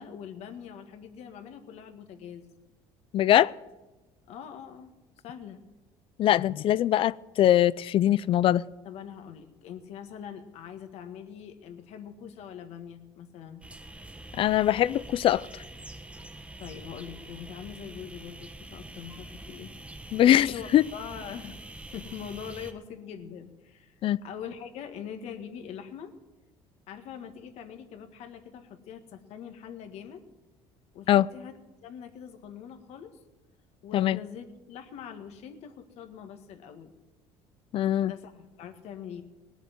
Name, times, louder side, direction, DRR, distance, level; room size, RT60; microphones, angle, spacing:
voice 1, 0.0-2.5 4.3-4.9 5.2-5.6 8.8-13.6 16.6-19.7 20.0-21.5 21.9-23.9 24.2-26.1 26.9-30.2 30.9-31.6 31.8-33.1 33.8-36.9 38.0-39.2, left 8 dB, 65° left, 1.7 m, -43 dB
voice 2, 3.1-3.5 6.2-8.6 14.4-15.5 20.1-20.5 20.7-20.8 24.0-24.2 31.1-31.3 33.9-34.2 37.7-38.1, left 12 dB, 50° left, 0.4 m, -22 dB
sound 1, 13.6-22.7, right 1 dB, 10° right, 1.3 m, -45 dB
19.0 x 7.2 x 9.3 m
cardioid pair, 105°, 12 cm